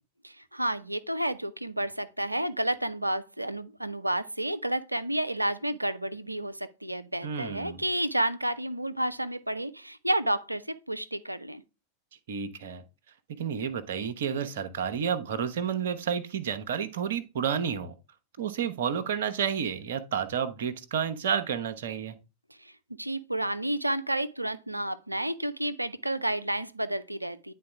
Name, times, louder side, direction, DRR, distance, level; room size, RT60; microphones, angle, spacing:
voice 1, 0.2-11.6 22.6-22.7 23.0-27.5, right 1 dB, 85° right, 0.4 m, -31 dB
voice 2, 7.2-7.8 12.3-12.8 13.4-17.9 18.4-22.2, right 7 dB, 60° right, 0.8 m, -30 dB
9.5 x 3.9 x 3.4 m
figure-of-eight pair, 90°, 0 cm